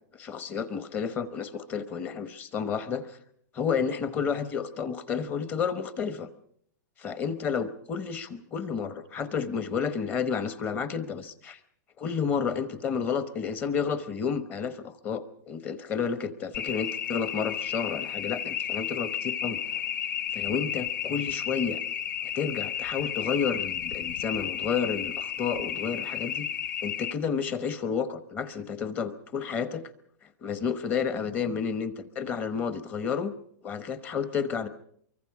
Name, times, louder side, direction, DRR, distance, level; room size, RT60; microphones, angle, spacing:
voice 1, 0.1-3.2 3.5-6.3 7.0-11.6 12.0-19.6 20.3-21.8 22.3-26.5 26.8-29.8 30.4-33.3 33.6-34.7, left 6 dB, 15° left, 12 dB, 0.9 m, -31 dB
sound 1, 16.5-27.1, left 9 dB, 80° left, 1.2 m, -32 dB
24.0 x 24.0 x 4.7 m, 0.64 s
supercardioid pair, 175°, 10 cm